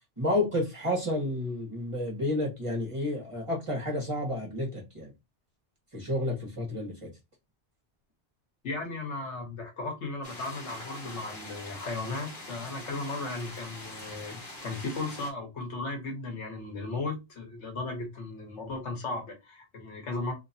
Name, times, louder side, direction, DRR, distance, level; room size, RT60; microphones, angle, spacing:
voice 1, 0.2-5.1 5.9-7.1, left 1 dB, 30° right, 1.5 m, -30 dB
voice 2, 8.6-20.3, left 3 dB, 85° left, 1.5 m, -36 dB
sound 1, 10.2-15.3, left 2 dB, 50° left, 1.8 m, -43 dB
3.3 x 3.0 x 2.7 m
omnidirectional pair, 1.2 m